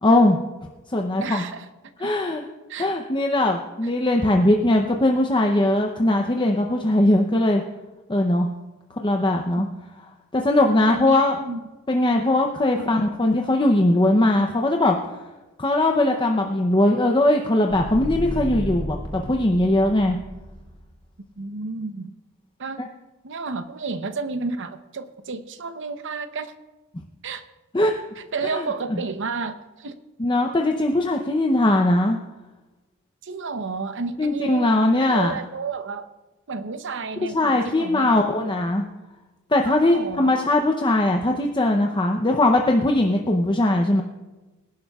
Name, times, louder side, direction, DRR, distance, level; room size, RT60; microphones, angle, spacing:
voice 1, 0.0-0.4 0.9-1.4 2.0-2.4 2.8-7.6 8.1-8.5 9.0-9.7 10.3-11.4 11.9-15.0 15.6-20.2 22.8-22.9 27.7-27.9 28.5-28.6 28.9-29.0 30.2-32.2 34.2-35.3 37.2-38.8 39.5-44.0, left 1 dB, 20° left, 2 dB, 0.7 m, -20 dB
voice 2, 1.2-1.7 2.0-2.4 2.7-2.9 9.6-9.9 10.9-11.6 12.7-13.0 21.4-22.1 22.6-22.8 23.2-26.5 27.2-27.4 28.2-29.9 33.2-34.7 35.0-36.1 36.5-38.6 39.7-40.4, right 4 dB, 60° right, 10 dB, 0.8 m, -32 dB
sound 1, 17.7-20.8, equal, 10° right, 4.0 m, -33 dB
24.5 x 11.5 x 2.4 m, 1.1 s
head